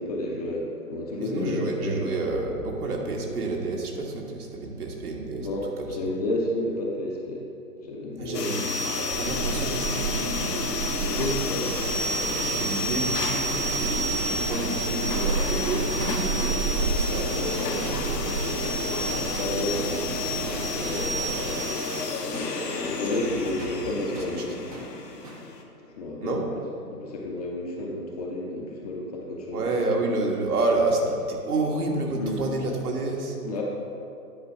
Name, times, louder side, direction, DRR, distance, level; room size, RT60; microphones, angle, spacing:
voice 1, 0.0-2.1 5.4-7.4 7.8-8.5 11.0-12.6 17.1-24.6 26.0-26.5 26.9-29.6 32.1-32.4 33.4-33.6, left 1 dB, 25° left, -2 dB, 0.6 m, -32 dB
voice 2, 1.2-5.5 5.8-6.0 8.2-10.6 12.4-17.4 22.8-23.0 26.2-26.4 29.5-33.4, right 2 dB, 65° right, 0 dB, 1.6 m, -29 dB
sound 1, 8.3-25.6, left 2 dB, 80° left, 1.1 m, -30 dB
sound 2, 9.1-21.6, right 3 dB, 40° right, 1.0 m, -31 dB
sound 3, 14.1-23.3 23.6-23.8 24.1-24.4 24.7-24.9 25.2-25.5, right 2 dB, 25° right, 0.5 m, -42 dB
9.6 x 4.2 x 4.9 m, 2.6 s
figure-of-eight pair, 135°, 48 cm